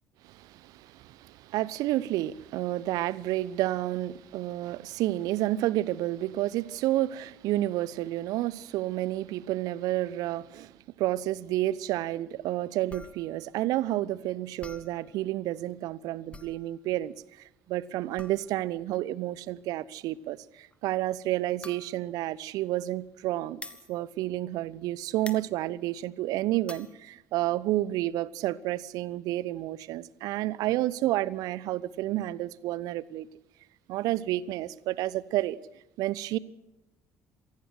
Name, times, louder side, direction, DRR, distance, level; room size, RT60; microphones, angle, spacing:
voice 1, 0.2-10.7 11.0-17.1 17.7-23.6 23.9-33.3 33.9-35.6 36.0-36.4, right 15 dB, 60° right, 0.9 m, -30 dB
sound 1, 12.9-24.9 25.2-26.9, left 2 dB, 15° left, 2.1 m, -48 dB
26.5 x 19.0 x 6.4 m
figure-of-eight pair, 55°, 7 cm